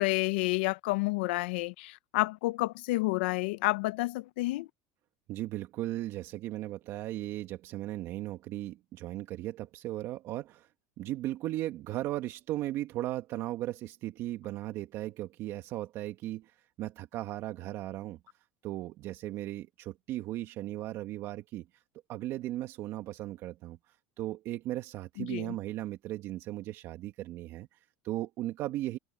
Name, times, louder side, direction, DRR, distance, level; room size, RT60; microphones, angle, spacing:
voice 1, 0.0-4.7 25.2-25.6, left 22 dB, 85° left, 0.7 m, -30 dB
voice 2, 5.3-10.7 11.0-18.2 18.6-21.8 22.1-29.0, right 15 dB, 55° right, 1.6 m, -37 dB
supercardioid pair, 120°, 6 cm